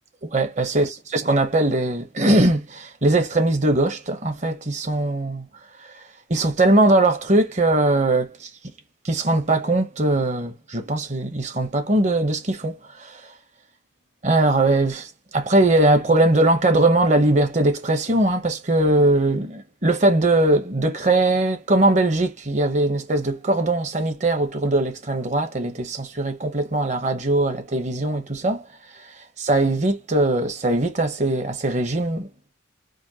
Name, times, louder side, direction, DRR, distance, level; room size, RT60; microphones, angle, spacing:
voice 1, 0.3-5.5 5.8-6.0 6.3-8.5 9.0-13.2 14.2-28.6 29.4-32.3, right 2 dB, 35° right, 0.8 m, -20 dB
5.0 x 2.2 x 2.8 m
head